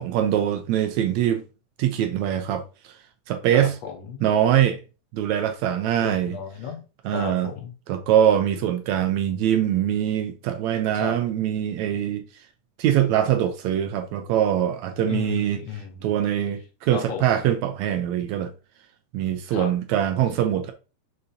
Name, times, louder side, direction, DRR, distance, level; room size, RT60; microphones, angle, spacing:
voice 1, 0.0-1.4 1.8-2.9 3.3-3.7 4.2-4.8 5.1-6.4 7.1-7.5 7.9-12.3 12.8-15.6 16.0-18.5 19.1-20.7, right 10 dB, 75° right, 1.8 m, -23 dB
voice 2, 3.5-4.2 6.0-6.8 7.1-7.7 10.9-11.1 15.1-16.1 16.9-17.3 19.5-19.7, left 7 dB, 65° left, 2.0 m, -34 dB
6.5 x 5.6 x 2.8 m
omnidirectional pair, 3.5 m